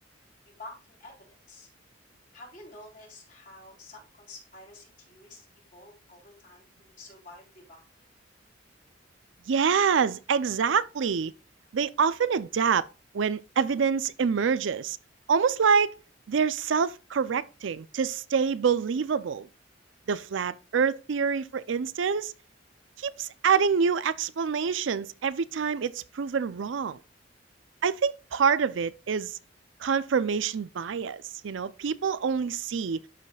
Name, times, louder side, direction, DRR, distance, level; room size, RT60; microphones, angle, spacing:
voice 1, 0.5-1.7 2.3-5.5 5.7-7.8, left 2 dB, 45° left, 3.8 m, -49 dB
voice 2, 9.5-11.3 11.7-12.9 13.1-15.0 15.3-16.0 16.3-19.5 20.1-22.3 23.0-27.0 27.8-29.4 29.8-33.0, right 6 dB, 85° right, 0.5 m, -26 dB
12.0 x 5.0 x 2.3 m
head